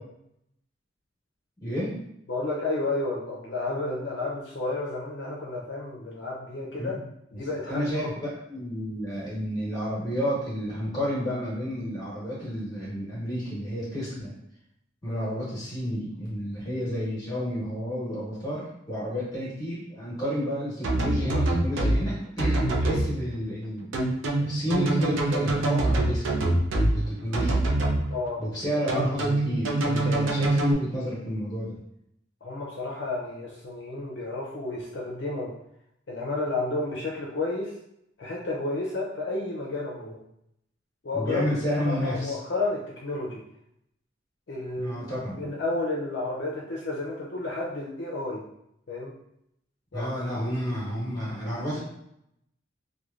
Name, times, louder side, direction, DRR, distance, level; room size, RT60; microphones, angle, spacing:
voice 1, 1.6-1.9 6.8-7.0 7.7-14.3 15.0-23.9 24.4-26.4 26.9-27.7 28.4-31.7 41.1-42.4 44.8-45.4 49.9-51.8, equal, 20° left, -7 dB, 1.1 m, -30 dB
voice 2, 2.3-7.0 7.3-8.1 28.1-28.4 32.4-35.5 36.1-37.7 38.2-40.2 41.0-41.4 41.9-43.4 44.5-48.4 48.9-49.1 49.9-50.1, left 2 dB, 65° left, -4 dB, 0.5 m, -31 dB
sound 1, 20.8-22.0 22.4-23.0 23.9-26.9 27.3-28.0 28.9-30.7, right 2 dB, 85° right, 0.5 m, -24 dB
3.0 x 2.2 x 2.4 m, 0.78 s
head